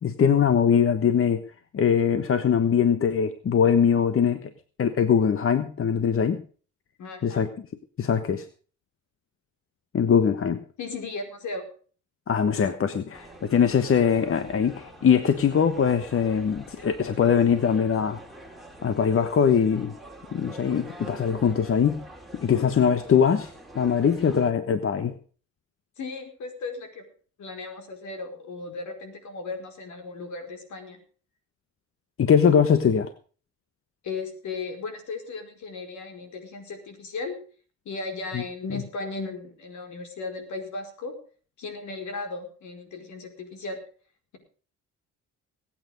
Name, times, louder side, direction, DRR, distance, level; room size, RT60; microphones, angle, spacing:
voice 1, 0.0-1.4 1.7-4.5 4.8-6.4 7.2-7.5 8.0-8.4 9.9-10.6 12.3-18.2 18.8-19.9 20.3-22.0 22.3-25.2 32.2-33.1 38.3-38.4 38.7-38.8, left 7 dB, 45° left, 10 dB, 1.2 m, -22 dB
voice 2, 7.0-7.5 10.8-11.7 26.0-27.0 27.4-31.0 34.0-37.4 37.8-41.1 41.6-43.8, left 3 dB, 70° left, 5 dB, 4.9 m, -36 dB
sound 1, 13.1-24.5, right 1 dB, ahead, 3.3 m, -45 dB
20.0 x 8.9 x 5.2 m, 0.41 s
cardioid pair, 90°, 30 cm